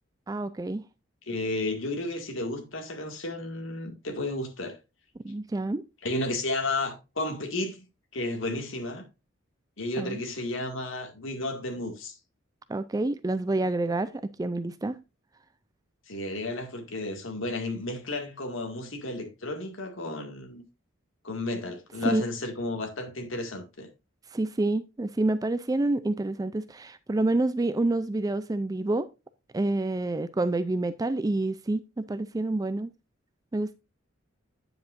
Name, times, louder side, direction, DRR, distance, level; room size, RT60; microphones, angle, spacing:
voice 1, 0.3-0.8 5.2-5.8 10.0-10.2 12.7-14.1 14.4-15.0 22.0-22.3 24.3-29.1 29.5-32.9 33.5-33.7, right 2 dB, 15° right, 0.3 m, -28 dB
voice 2, 1.3-4.8 6.0-7.8 8.1-9.0 9.8-12.2 16.1-20.6 21.2-23.9, left 2 dB, 70° left, 2.1 m, -32 dB
9.1 x 7.9 x 2.5 m
head